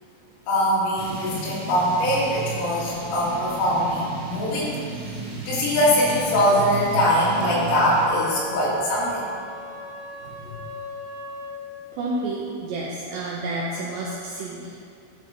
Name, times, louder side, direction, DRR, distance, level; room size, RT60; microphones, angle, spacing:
voice 1, 0.5-4.7 5.5-9.3 10.4-10.6, equal, 80° left, -7 dB, 4.7 m, -22 dB
sound 1, 1.0-8.1, right 4 dB, 60° right, 4.2 m, -34 dB
Wind instrument woodwind instrument, 7.1-11.6, left 1 dB, 50° left, 2.9 m, -38 dB
voice 2, 11.9-14.8, right 2 dB, 90° right, -3 dB, 2.4 m, -30 dB
13.0 x 6.2 x 4.2 m, 2.4 s
omnidirectional pair, 5.8 m